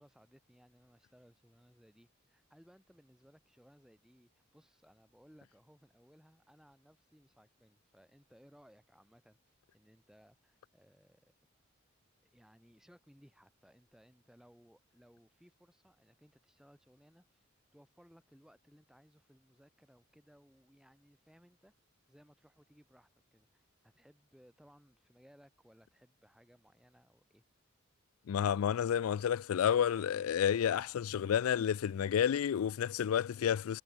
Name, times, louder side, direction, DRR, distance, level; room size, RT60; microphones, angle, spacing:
voice 1, 0.0-11.3 12.2-21.7 22.1-27.4 30.2-30.4, equal, 5° right, 5.5 m, -63 dB
voice 2, 28.3-33.8, left 8 dB, 85° left, 0.4 m, -30 dB
head